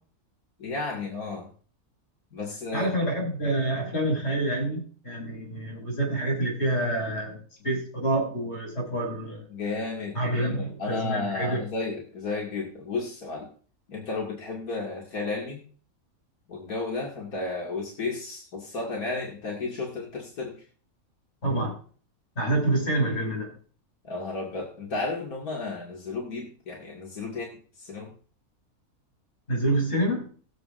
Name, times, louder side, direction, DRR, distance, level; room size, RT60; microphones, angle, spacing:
voice 1, 0.6-1.5 2.3-2.9 9.5-13.5 13.9-15.6 16.5-20.5 24.0-28.1, left 3 dB, 90° left, -3 dB, 2.7 m, -33 dB
voice 2, 2.7-9.5 10.1-11.6 21.4-21.7 22.4-23.5 29.5-30.3, right 1 dB, 50° left, -3 dB, 6.5 m, -27 dB
21.0 x 7.5 x 2.6 m, 0.41 s
omnidirectional pair, 1.5 m